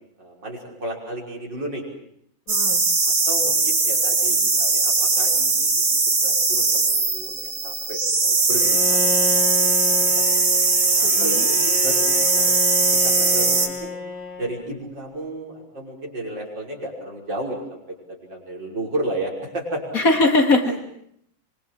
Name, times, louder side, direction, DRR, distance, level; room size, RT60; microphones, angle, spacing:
voice 1, 0.2-1.8 3.0-9.8 10.1-10.3 11.0-12.1 12.3-12.5 13.0-14.0 14.4-20.0 20.6-20.8, right 1 dB, 70° right, -1 dB, 6.4 m, -33 dB
voice 2, 2.5-2.8 11.0-11.4 19.9-20.9, left 2 dB, 50° left, 5 dB, 2.3 m, -20 dB
sound 1, 2.5-13.7, right 3 dB, 85° right, 3.9 m, -20 dB
Bowed string instrument, 8.5-14.8, left 3 dB, 85° left, 8.8 m, -31 dB
26.0 x 23.5 x 7.5 m, 0.72 s
omnidirectional pair, 2.0 m